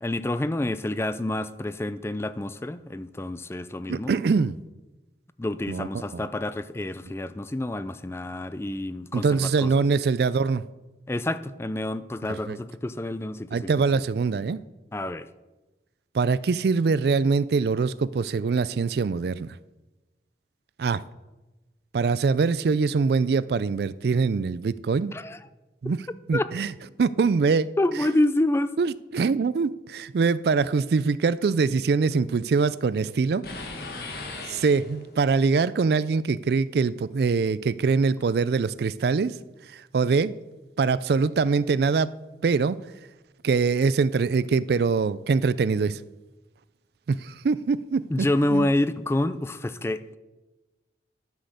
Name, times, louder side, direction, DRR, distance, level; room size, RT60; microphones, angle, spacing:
voice 1, 0.0-4.1 5.4-9.8 11.1-14.0 14.9-15.3 25.1-25.4 26.3-26.5 27.8-28.7 48.1-50.2, left 1 dB, 15° left, 0.4 m, -28 dB
voice 2, 3.9-4.6 5.7-6.2 9.1-10.6 12.3-12.6 13.5-14.6 16.1-19.6 20.8-21.0 21.9-25.1 25.8-26.0 26.3-26.7 27.0-27.7 28.8-33.4 34.5-39.4 39.7-40.3 40.8-42.1 42.4-42.8 43.4-46.0 47.1-48.7, right 4 dB, 60° right, 0.4 m, -23 dB
sound 1, 33.4-35.3, left 3 dB, 60° left, 1.7 m, -38 dB
11.5 x 6.3 x 6.6 m
head